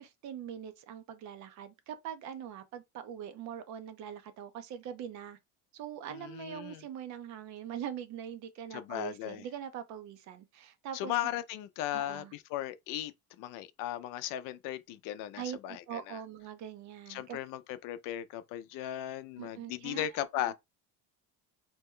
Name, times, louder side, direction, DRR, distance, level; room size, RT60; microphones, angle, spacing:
voice 1, 0.0-5.4 5.7-11.1 11.9-12.3 15.4-17.4 19.4-20.2, right 9 dB, 55° right, 0.7 m, -42 dB
voice 2, 6.1-6.8 8.7-9.4 10.9-16.2 17.1-20.5, left 12 dB, 65° left, 0.5 m, -37 dB
2.9 x 2.1 x 3.6 m
cardioid pair, 140°, 35 cm